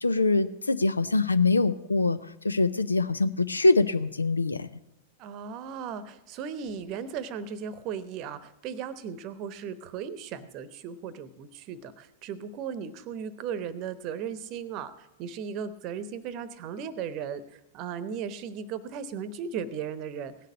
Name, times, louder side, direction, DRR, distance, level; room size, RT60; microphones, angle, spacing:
voice 1, 0.0-2.2 2.4-4.7, left 3 dB, 80° left, 13 dB, 0.6 m, -24 dB
voice 2, 5.2-20.3, right 7 dB, 40° right, 15 dB, 0.9 m, -36 dB
16.5 x 6.6 x 8.4 m, 0.83 s
figure-of-eight pair, 95°, 0 cm